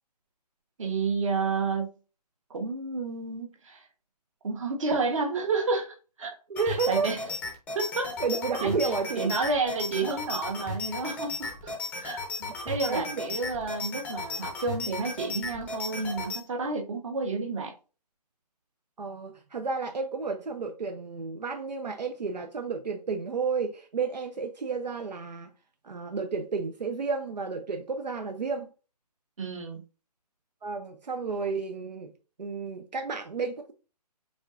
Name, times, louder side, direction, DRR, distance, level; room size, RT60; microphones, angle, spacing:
voice 1, 0.8-1.9 2.5-3.8 4.4-6.3 6.7-7.2 7.7-8.1 8.6-8.8 9.1-11.7 12.0-12.2 12.7-17.7 29.4-29.8, right 4 dB, 50° right, 1.4 m, -30 dB
voice 2, 6.5-7.3 8.2-9.3 12.4-13.2 19.0-25.5 25.8-28.7 30.6-32.1 32.4-33.7, right 4 dB, 85° right, 0.7 m, -32 dB
sound 1, 6.6-16.4, left 3 dB, 5° left, 0.6 m, -35 dB
5.1 x 3.8 x 2.5 m
hypercardioid pair, 150°, 21 cm